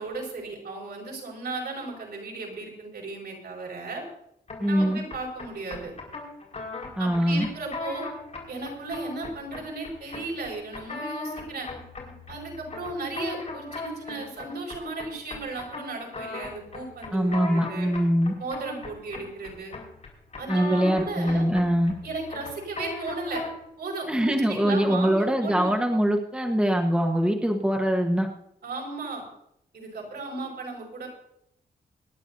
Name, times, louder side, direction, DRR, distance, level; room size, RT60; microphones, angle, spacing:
voice 1, 0.0-4.0 4.7-5.9 7.0-8.1 8.5-11.7 12.3-17.9 18.4-19.7 20.4-21.5 22.0-23.4 23.8-25.8 28.6-29.2 29.7-31.1, right 3 dB, 70° right, 0 dB, 5.6 m, -35 dB
sound 1, 4.5-23.7, left 3 dB, 40° left, 5.0 m, -39 dB
voice 2, 4.6-5.0 7.0-7.5 17.1-18.3 20.5-21.9 24.1-28.3, equal, 5° right, 2 dB, 1.3 m, -23 dB
25.0 x 11.0 x 2.7 m, 0.77 s
wide cardioid pair, 120°, 17 cm